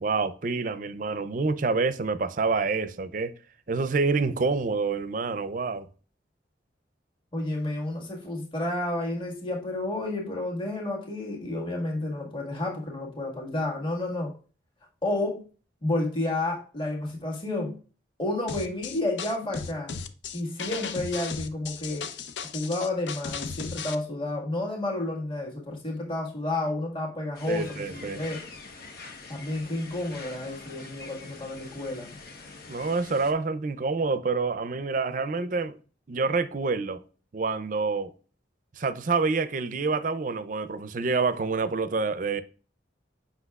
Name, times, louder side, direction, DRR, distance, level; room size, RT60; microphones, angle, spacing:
voice 1, 0.0-3.3 3.7-5.9 27.5-28.2 32.7-35.8 36.1-37.0 37.3-38.1 38.8-42.4, right 4 dB, 45° right, 0.5 m, -27 dB
voice 2, 7.3-14.3 15.0-15.5 15.8-17.8 18.2-19.9 20.3-22.1 22.5-28.4 29.3-32.1, left 2 dB, 30° left, 1.6 m, -31 dB
sound 1, 18.5-24.0, left 5 dB, 85° left, 0.6 m, -36 dB
sound 2, 27.3-33.3, left 3 dB, 55° left, 1.1 m, -44 dB
7.9 x 5.7 x 2.3 m
head